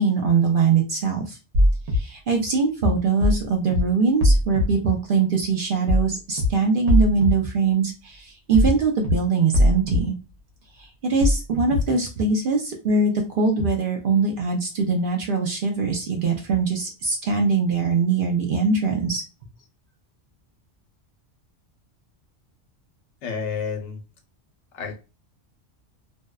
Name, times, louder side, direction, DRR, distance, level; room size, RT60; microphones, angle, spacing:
voice 1, 0.0-1.4 1.9-10.2 10.8-19.2, right 4 dB, 60° right, 0.6 m, -22 dB
sound 1, 1.5-2.0 3.2-3.4 3.7-3.8 4.2-4.6 5.9-6.1 6.4-6.5 6.9-7.3 8.5-8.8 9.0-9.1 9.5-10.0 11.2-11.4 11.7-11.8, left 1 dB, 85° right, 1.0 m, -19 dB
voice 2, 23.2-24.0 24.7-25.0, left 6 dB, 80° left, 0.9 m, -30 dB
2.6 x 2.1 x 2.3 m
omnidirectional pair, 1.2 m